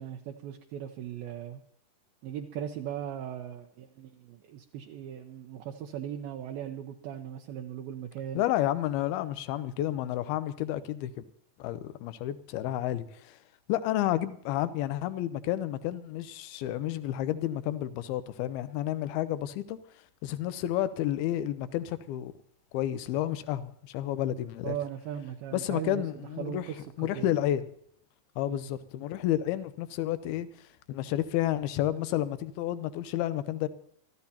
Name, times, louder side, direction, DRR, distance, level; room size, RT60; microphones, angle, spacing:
voice 1, 0.0-1.6 2.2-8.4 24.6-27.3 28.5-28.7, right 9 dB, 75° right, 2.5 m, -38 dB
voice 2, 8.4-11.2 11.6-13.4 13.7-19.8 20.2-22.3 22.7-24.8 25.5-26.7 27.0-27.7 28.4-33.7, left 13 dB, 75° left, 2.6 m, -31 dB
24.0 x 14.5 x 2.9 m
omnidirectional pair, 4.7 m